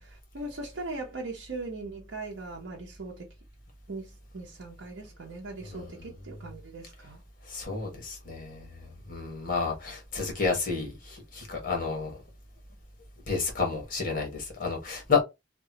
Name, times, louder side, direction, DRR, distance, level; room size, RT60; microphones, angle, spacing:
voice 1, 0.0-3.3 3.9-7.2, right 2 dB, 75° right, 0.7 m, -40 dB
voice 2, 7.5-12.1 13.3-15.2, left 4 dB, 50° left, 1.3 m, -30 dB
2.9 x 2.2 x 2.8 m
head